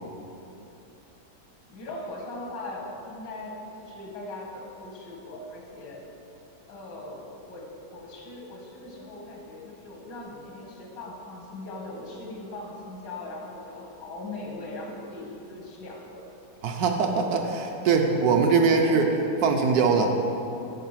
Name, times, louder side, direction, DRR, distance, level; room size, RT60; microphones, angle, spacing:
voice 1, 1.7-6.0 6.7-16.2, left 2 dB, 85° left, -1 dB, 2.0 m, -40 dB
voice 2, 16.6-20.2, right 4 dB, 70° right, 4 dB, 1.0 m, -22 dB
9.2 x 4.7 x 5.6 m, 2.9 s
omnidirectional pair, 1.9 m